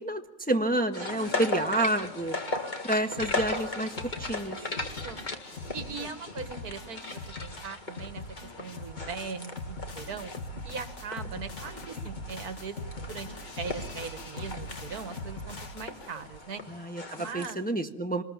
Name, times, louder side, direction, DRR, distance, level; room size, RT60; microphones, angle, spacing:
voice 1, 0.0-2.4 2.8-3.9 4.2-4.6 16.7-18.2, right 1 dB, 5° left, 5 dB, 1.2 m, -29 dB
sound 1, 0.9-17.5, left 2 dB, 30° left, 2.0 m, -38 dB
voice 2, 1.0-1.4 4.5-5.2 5.7-8.2 8.6-10.3 10.6-16.6 17.2-17.6, right 5 dB, 70° right, 10 dB, 2.0 m, -40 dB
sound 2, 3.2-16.4, left 2 dB, 50° left, 2.2 m, -42 dB
25.5 x 20.5 x 7.3 m, 0.77 s
omnidirectional pair, 1.6 m